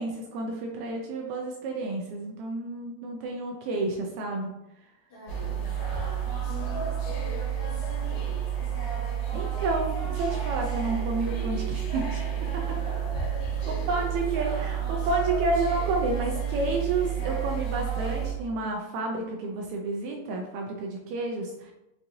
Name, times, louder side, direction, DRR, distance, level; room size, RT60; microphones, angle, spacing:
voice 1, 0.0-4.5 9.3-12.8 13.7-21.7, right 2 dB, 80° right, 1 dB, 1.7 m, -30 dB
voice 2, 5.1-8.7 13.6-15.0, left 1 dB, 55° left, -8 dB, 2.0 m, -46 dB
sound 1, 5.3-18.3, right 8 dB, 85° left, 2.5 m, -30 dB
5.6 x 2.6 x 2.6 m, 0.91 s
omnidirectional pair, 3.4 m